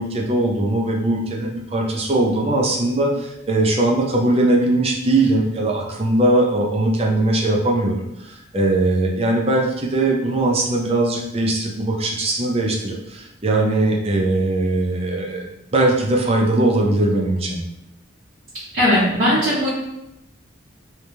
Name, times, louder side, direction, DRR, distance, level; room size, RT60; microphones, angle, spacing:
voice 1, 0.0-17.6, right 2 dB, 30° right, -1 dB, 0.5 m, -20 dB
voice 2, 18.7-19.7, left 1 dB, 50° right, -12 dB, 1.3 m, -18 dB
3.3 x 2.8 x 3.3 m, 0.87 s
head